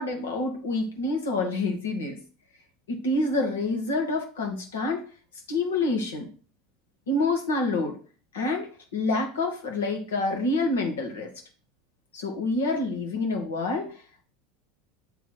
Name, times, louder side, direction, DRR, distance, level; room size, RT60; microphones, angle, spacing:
voice 1, 0.0-2.2 2.9-5.0 5.5-6.3 7.1-8.0 8.3-11.3 12.1-13.9, left 2 dB, 75° left, 2 dB, 1.8 m, -27 dB
8.2 x 3.7 x 4.3 m, 0.39 s
hypercardioid pair, 80°, 0 cm